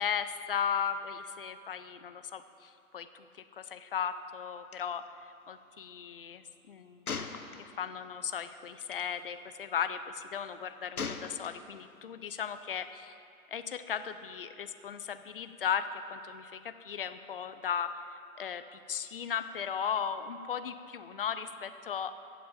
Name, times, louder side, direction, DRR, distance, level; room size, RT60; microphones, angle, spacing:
voice 1, 0.0-13.2 13.5-18.0 18.4-22.2, left 7 dB, 40° left, 11 dB, 0.6 m, -36 dB
Gunshot gunfire, 4.7-4.8 5.1-5.2 7.1-8.0 8.8-9.0 11.0-11.9, left 5 dB, 80° left, 1.0 m, -39 dB
14.5 x 8.4 x 7.3 m, 2.6 s
figure-of-eight pair, 130°, 44 cm